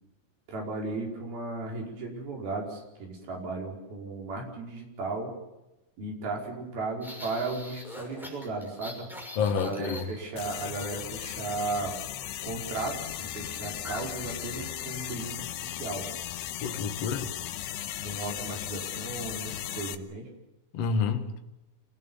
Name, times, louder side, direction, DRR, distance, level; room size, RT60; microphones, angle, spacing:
voice 1, 0.5-5.4 6.0-9.1 9.5-12.0 12.4-16.1 18.0-20.3, right 3 dB, 55° right, 6.8 m, -35 dB
sound 1, 7.0-10.5 13.8-14.1 14.4-14.6 15.1-15.4, left 2 dB, ahead, 5.8 m, -43 dB
voice 2, 9.4-10.1 16.6-17.3 20.7-21.4, left 5 dB, 55° left, 1.8 m, -29 dB
sound 2, 10.4-20.0, left 12 dB, 75° left, 2.8 m, -37 dB
27.5 x 19.5 x 7.2 m
omnidirectional pair, 5.3 m